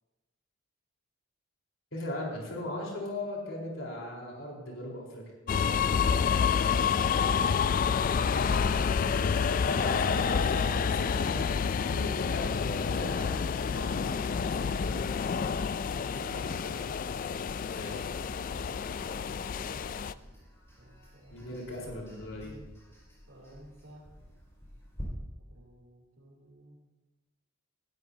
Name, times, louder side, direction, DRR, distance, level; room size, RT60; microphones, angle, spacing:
voice 1, 1.9-5.2 9.5-11.5 11.8-15.1 17.7-18.1 21.3-22.5, left 1 dB, 70° left, -2 dB, 4.3 m, -38 dB
sound 1, 5.5-20.1, left 6 dB, 40° left, 0.3 m, -28 dB
sound 2, 8.4-25.0, equal, 15° left, 4.8 m, -52 dB
voice 2, 15.9-16.9 18.2-19.8 20.1-20.4 20.8-22.6 23.3-24.1 25.5-26.8, right 1 dB, 70° right, -6 dB, 3.1 m, -53 dB
19.5 x 12.5 x 2.8 m, 1.1 s
head